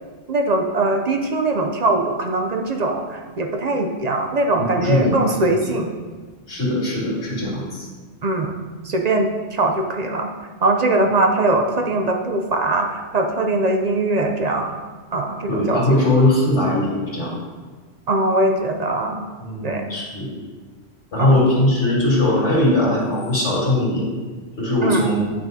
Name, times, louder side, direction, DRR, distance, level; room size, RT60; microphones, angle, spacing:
voice 1, 0.3-5.9 8.2-8.6 8.8-10.3 10.6-14.7 15.1-16.0 18.1-19.2 19.6-19.8 21.2-21.4 24.8-25.1, right 2 dB, 50° right, 3 dB, 0.5 m, -21 dB
voice 2, 4.6-5.2 5.4-5.5 6.5-7.9 15.5-17.4 19.4-20.3 21.1-24.0 24.6-25.2, left 1 dB, 65° left, -6 dB, 2.5 m, -20 dB
8.7 x 6.0 x 2.7 m, 1.4 s
omnidirectional pair, 1.3 m